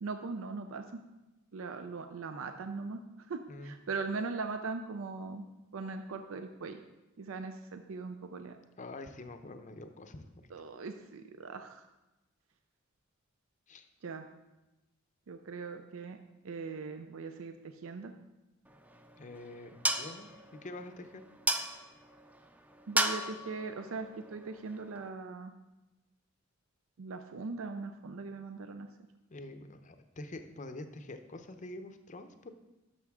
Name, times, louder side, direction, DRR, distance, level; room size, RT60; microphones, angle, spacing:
voice 1, 0.0-0.8 1.5-3.0 3.3-5.5 5.7-6.8 7.2-8.6 10.5-11.8 14.0-14.3 15.3-16.2 16.4-17.6 17.8-18.1 22.9-25.5 27.0-28.9, right 4 dB, 70° right, 8 dB, 0.5 m, -40 dB
voice 2, 8.8-10.5 13.7-13.9 19.2-21.2 29.3-32.5, left 2 dB, 35° left, 8 dB, 0.6 m, -46 dB
sound 1, 18.7-25.1, right 1 dB, 5° right, 0.3 m, -36 dB
10.5 x 6.5 x 3.5 m, 1.0 s
head